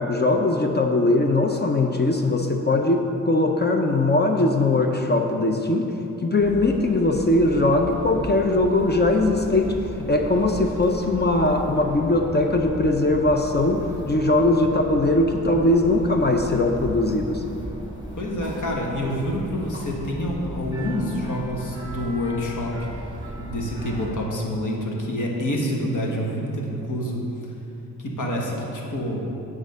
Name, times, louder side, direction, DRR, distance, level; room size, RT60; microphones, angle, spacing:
voice 1, 0.0-5.9 6.2-17.4, left 2 dB, 30° left, 3 dB, 0.6 m, -20 dB
sound 1, 6.4-24.2, right 1 dB, 15° right, 1.8 m, -36 dB
voice 2, 18.2-22.7 23.4-27.2 28.0-29.3, left 1 dB, 65° left, -1 dB, 1.4 m, -27 dB
8.8 x 3.6 x 6.8 m, 3.0 s
cardioid pair, 65°, 33 cm